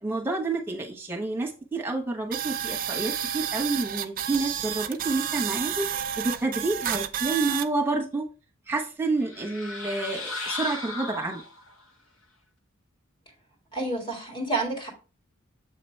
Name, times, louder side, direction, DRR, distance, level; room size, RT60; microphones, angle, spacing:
voice 1, 0.0-5.9 6.2-8.3 8.7-11.4, right 3 dB, 10° right, 1.1 m, -29 dB
sound 1, 2.3-7.7, right 10 dB, 40° right, 0.4 m, -30 dB
sound 2, 9.2-11.8, left 2 dB, 75° left, 1.0 m, -35 dB
voice 2, 13.7-14.9, right 2 dB, 25° left, 1.9 m, -29 dB
7.4 x 3.0 x 4.4 m
head